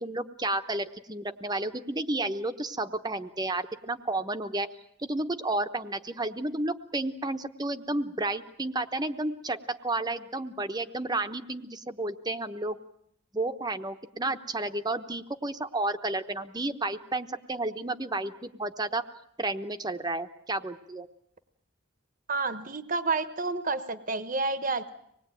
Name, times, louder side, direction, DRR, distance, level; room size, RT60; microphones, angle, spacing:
voice 1, 0.0-4.7 5.0-12.8 13.3-19.0 19.4-21.1, right 2 dB, 20° right, 9 dB, 1.0 m, -31 dB
voice 2, 22.3-24.9, right 3 dB, 40° right, 11 dB, 1.1 m, -30 dB
25.5 x 20.0 x 9.0 m, 0.75 s
head